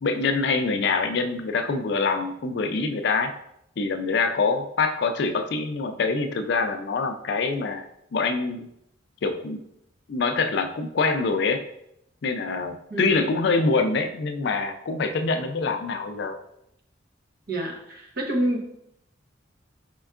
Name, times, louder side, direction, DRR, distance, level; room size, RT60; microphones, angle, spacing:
voice 1, 0.0-3.3 3.8-7.8 8.1-8.7 9.2-9.6 10.1-11.6 12.2-16.4, left 4 dB, 60° left, 7 dB, 0.4 m, -25 dB
voice 2, 17.5-18.7, right 1 dB, 50° right, 0 dB, 0.8 m, -27 dB
4.4 x 4.2 x 2.4 m, 0.77 s
head